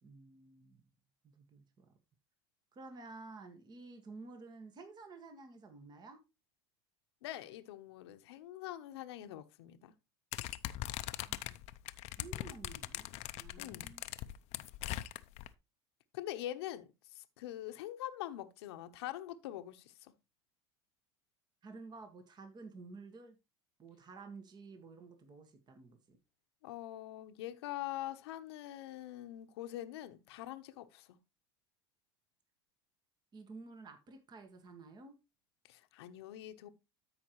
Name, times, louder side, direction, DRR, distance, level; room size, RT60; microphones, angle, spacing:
voice 1, 0.0-0.9 1.2-1.9 2.7-6.2 11.3-11.4 12.2-13.1 13.3-14.0 21.6-23.3 23.8-26.2 33.3-35.2, right 3 dB, 30° right, 1.7 m, -52 dB
voice 2, 7.2-9.9 13.6-13.9 16.1-20.1 26.6-31.2 35.7-36.7, left 13 dB, 80° left, 0.9 m, -44 dB
sound 1, 10.3-15.5, left 16 dB, 55° left, 0.6 m, -41 dB
13.0 x 5.1 x 3.1 m
hypercardioid pair, 95°, 14 cm